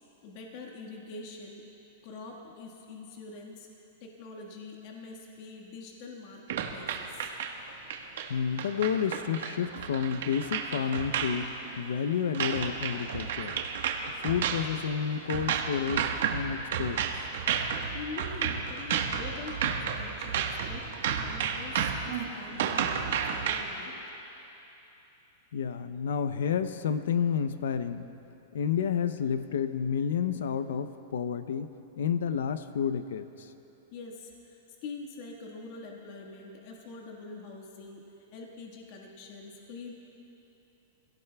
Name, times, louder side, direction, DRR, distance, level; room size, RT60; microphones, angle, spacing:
voice 1, 0.2-1.7 2.0-3.7 4.0-7.3 17.9-20.8 21.2-24.0 33.9-39.9, left 4 dB, 45° left, 0 dB, 1.6 m, -44 dB
sound 1, 6.5-23.6, right 7 dB, 70° right, 1.3 m, -32 dB
voice 2, 8.3-13.6 14.2-17.3 25.5-28.1 28.5-33.5, left 7 dB, 90° left, 11 dB, 0.6 m, -30 dB
25.5 x 17.0 x 2.3 m, 3.0 s
supercardioid pair, 155°, 0 cm